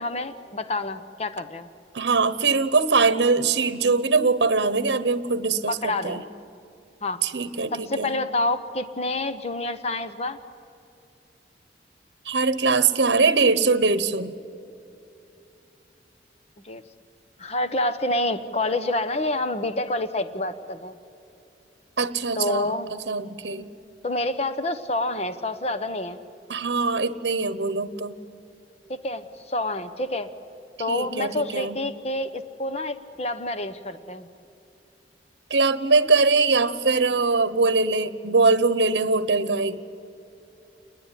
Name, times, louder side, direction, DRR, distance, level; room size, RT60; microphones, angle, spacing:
voice 1, 0.0-1.7 5.7-6.3 7.0-7.2 7.7-10.4 16.6-16.8 17.4-20.9 22.4-22.9 24.0-26.2 28.9-30.3 30.8-34.3, left 2 dB, 35° left, 11 dB, 1.0 m, -28 dB
voice 2, 1.9-6.2 7.2-8.1 12.2-14.3 22.0-23.7 26.5-28.2 30.9-31.8 35.5-39.8, right 4 dB, 75° right, 14 dB, 1.0 m, -22 dB
28.5 x 20.5 x 10.0 m, 2.8 s
head